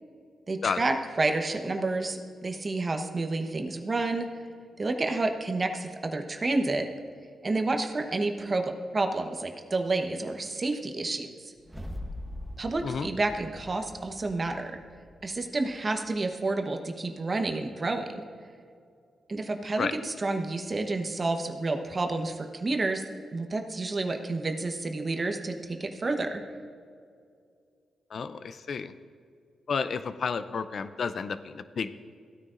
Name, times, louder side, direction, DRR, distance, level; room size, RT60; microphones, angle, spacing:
voice 1, 0.5-4.3 4.8-6.9 7.4-11.3 12.6-14.8 15.2-18.2 19.3-23.0 23.3-26.4, right 2 dB, 35° right, 5 dB, 1.0 m, -30 dB
sound 1, 11.6-15.9, left 1 dB, 10° right, 1.0 m, -42 dB
voice 2, 28.1-28.9 29.7-31.9, left 5 dB, 60° left, 12 dB, 0.5 m, -31 dB
16.5 x 9.5 x 2.6 m, 2.3 s
cardioid pair, 60°, 0 cm